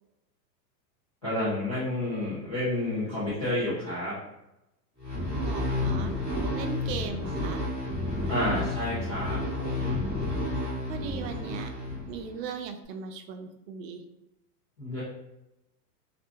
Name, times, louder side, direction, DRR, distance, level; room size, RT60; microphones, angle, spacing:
voice 1, 1.2-4.1 8.3-10.0 14.8-15.0, left 1 dB, 25° left, -14 dB, 0.3 m, -30 dB
sound 1, 5.0-12.4, left 2 dB, 10° left, 0.8 m, -31 dB
voice 2, 5.4-6.1 6.5-7.6 10.9-11.7 12.1-14.0, right 6 dB, 85° right, 6 dB, 0.5 m, -38 dB
2.6 x 2.4 x 2.3 m, 0.90 s
supercardioid pair, 175°, 49 cm